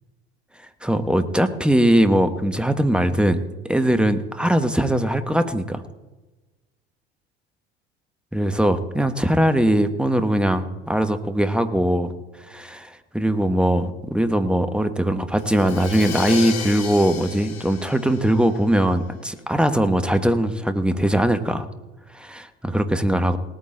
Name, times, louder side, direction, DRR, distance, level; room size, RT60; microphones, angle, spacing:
voice 1, 0.8-3.4 3.7-5.8 8.3-12.1 12.5-21.7 22.1-23.4, right 1 dB, 5° right, 9 dB, 1.2 m, -21 dB
Crash cymbal, 15.4-19.1, left 7 dB, 50° left, 1.9 m, -33 dB
19.0 x 9.0 x 3.9 m, 1.1 s
hypercardioid pair, 70°, 33 cm